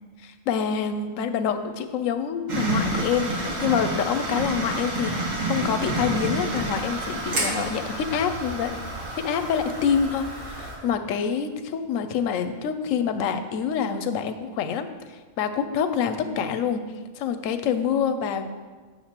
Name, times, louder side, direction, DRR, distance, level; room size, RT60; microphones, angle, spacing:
voice 1, 0.2-5.1 5.4-8.8 9.2-16.8 17.2-18.5, left 7 dB, 85° left, 9 dB, 1.0 m, -26 dB
sound 1, 2.5-10.7, right 1 dB, 85° right, 1.8 m, -29 dB
8.2 x 6.8 x 2.9 m, 1.4 s
omnidirectional pair, 1.3 m